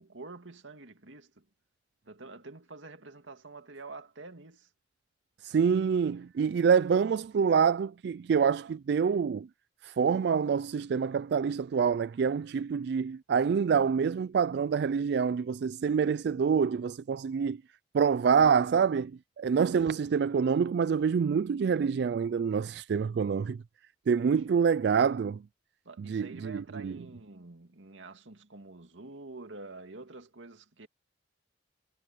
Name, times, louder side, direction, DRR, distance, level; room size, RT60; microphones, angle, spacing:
voice 1, 0.0-1.5 2.0-4.7 25.8-30.9, right 3 dB, 85° right, 2.2 m, -47 dB
voice 2, 5.4-9.5 9.8-17.6 17.9-23.6 24.1-25.4 26.0-26.9, right 6 dB, 60° right, 0.3 m, -26 dB
head